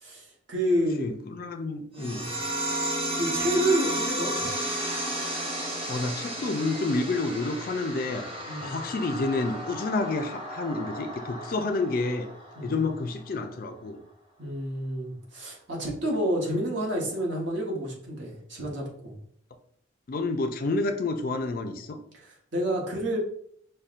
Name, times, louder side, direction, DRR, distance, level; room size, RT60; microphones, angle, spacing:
voice 1, 0.0-1.1 1.9-2.4 3.1-4.5 8.4-8.8 12.5-12.8 14.4-19.1 22.1-23.2, right 1 dB, 75° right, -2 dB, 1.0 m, -29 dB
voice 2, 1.0-2.2 5.9-8.3 8.6-12.3 12.6-14.0 20.1-22.0, left 3 dB, 50° left, 6 dB, 0.4 m, -29 dB
sound 1, 2.0-13.0, right 1 dB, 30° right, 0.7 m, -33 dB
5.4 x 2.2 x 2.5 m, 0.65 s
head